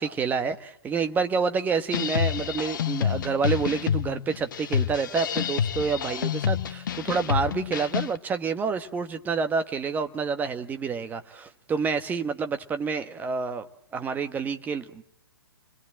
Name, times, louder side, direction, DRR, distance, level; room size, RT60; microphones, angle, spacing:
voice 1, 0.0-13.7 13.9-15.0, right 5 dB, 15° right, 8 dB, 1.4 m, -28 dB
sound 1, 1.9-8.2, left 8 dB, 50° left, 1.0 m, -28 dB
28.0 x 21.0 x 7.7 m, 0.71 s
figure-of-eight pair, 120°, 13 cm